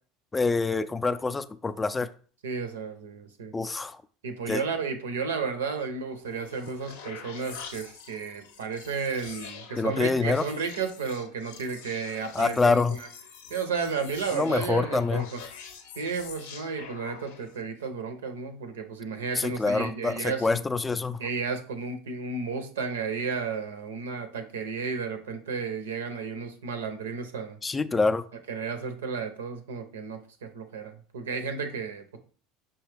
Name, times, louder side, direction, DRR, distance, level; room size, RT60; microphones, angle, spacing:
voice 1, 0.3-2.1 3.5-4.0 4.5-4.6 9.8-10.4 12.3-13.0 14.3-15.2 19.3-21.2 27.6-28.2, left 4 dB, 20° left, 0.3 m, -26 dB
voice 2, 2.4-3.5 4.2-13.1 13.5-15.4 16.0-20.6 21.2-27.6 28.5-32.2, right 5 dB, 85° right, 0.6 m, -33 dB
sound 1, 6.1-17.6, left 6 dB, 75° left, 0.6 m, -45 dB
5.5 x 2.3 x 3.3 m
hypercardioid pair, 80°, 0 cm